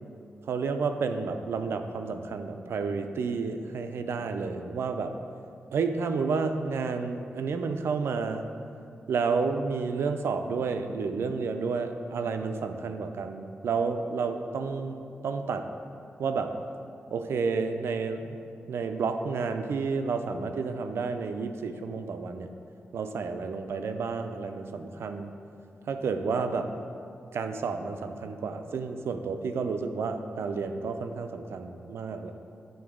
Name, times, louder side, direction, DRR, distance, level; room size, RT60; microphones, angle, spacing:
voice 1, 0.5-5.1 5.7-8.4 9.1-15.7 16.2-16.5 17.1-18.4 18.7-22.5 22.9-25.3 25.9-26.7 27.3-32.3, right 4 dB, 85° right, 7 dB, 0.4 m, -30 dB
9.2 x 3.8 x 4.9 m, 2.6 s
wide cardioid pair, 95°, 4 cm